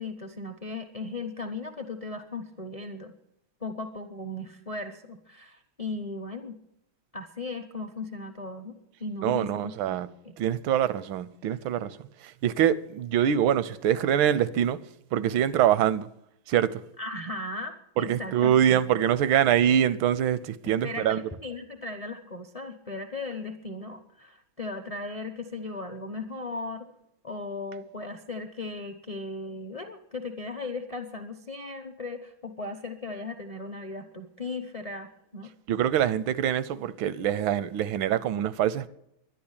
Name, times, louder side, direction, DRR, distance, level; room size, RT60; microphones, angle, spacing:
voice 1, 0.0-3.1 3.6-6.6 7.1-8.7 9.0-9.9 10.2-10.3 17.0-18.8 20.8-26.9 27.2-35.5, left 2 dB, 40° left, 0.5 m, -37 dB
voice 2, 9.2-10.1 10.4-12.0 12.2-14.8 15.1-16.1 16.5-16.8 18.0-21.2 35.7-38.9, right 10 dB, 80° right, 1.5 m, -24 dB
11.5 x 10.5 x 8.7 m
omnidirectional pair, 2.1 m